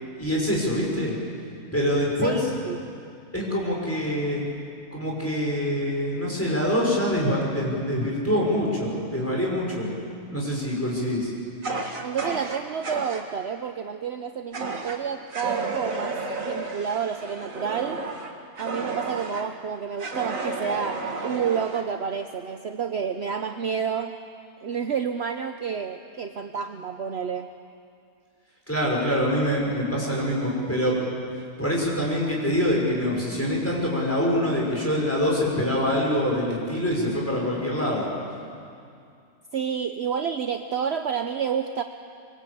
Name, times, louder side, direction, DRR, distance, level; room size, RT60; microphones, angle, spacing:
voice 1, 0.2-1.1 1.7-2.4 3.3-4.4 4.9-9.9 10.3-11.3 28.7-31.0 31.6-38.1, equal, 10° left, -3 dB, 6.1 m, -25 dB
voice 2, 2.2-2.8 12.0-16.2 16.4-18.0 18.6-24.2 24.6-27.5 39.5-41.8, right 7 dB, 55° right, 7 dB, 1.0 m, -29 dB
Fire, 11.6-13.2 14.5-15.0 15.3-19.5 20.0-21.9, right 3 dB, 70° right, 2.5 m, -32 dB
24.5 x 24.0 x 8.5 m, 2.4 s
omnidirectional pair, 1.5 m